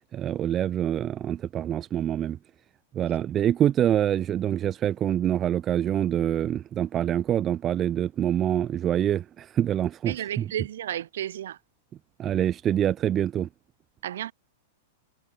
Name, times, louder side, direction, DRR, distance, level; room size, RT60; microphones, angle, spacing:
voice 1, 0.1-2.4 2.9-10.4 12.2-13.5, right 10 dB, 25° right, 0.3 m, -25 dB
voice 2, 10.1-11.6 14.0-14.3, right 11 dB, 75° right, 1.1 m, -32 dB
hypercardioid pair, 130°, 0 cm